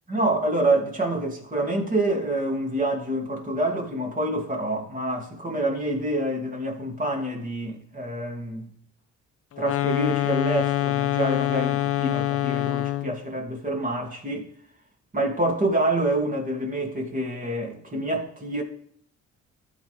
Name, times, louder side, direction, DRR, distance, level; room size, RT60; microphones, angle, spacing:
voice 1, 0.1-8.7 9.6-14.5 15.1-18.6, right 1 dB, 25° right, 2.5 m, -27 dB
sound 1, 9.5-13.2, left 14 dB, 50° left, 0.5 m, -25 dB
13.5 x 4.6 x 3.4 m
cardioid pair, 90°, 30 cm